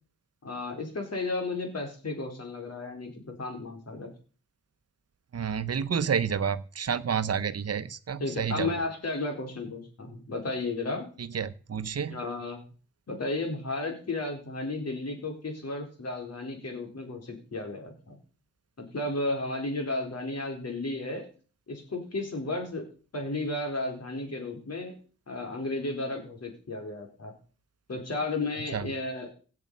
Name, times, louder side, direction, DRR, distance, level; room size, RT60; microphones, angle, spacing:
voice 1, 0.4-4.1 8.2-11.1 12.1-12.6 13.1-18.2 18.9-21.3 21.7-22.8 23.1-24.9 25.3-27.3 27.9-29.3, left 2 dB, 55° left, 3 dB, 4.2 m, -33 dB
voice 2, 5.3-8.7 11.3-12.2 28.7-28.8, right 7 dB, 55° right, 13 dB, 0.9 m, -29 dB
17.0 x 8.7 x 5.5 m, 0.39 s
wide cardioid pair, 120°, 30 cm